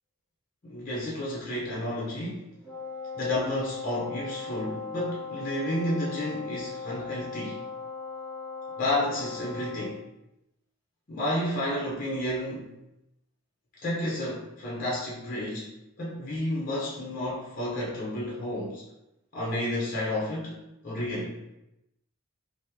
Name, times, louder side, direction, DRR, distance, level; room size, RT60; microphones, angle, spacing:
voice 1, 0.6-2.6 3.2-7.6 8.8-10.0 11.1-12.7 13.8-15.7 16.0-18.8 19.3-21.4, left 1 dB, 40° left, -5 dB, 0.6 m, -31 dB
Wind instrument woodwind instrument, 2.6-9.9, left 4 dB, 5° right, 0.7 m, -38 dB
3.4 x 2.0 x 2.8 m, 0.89 s
head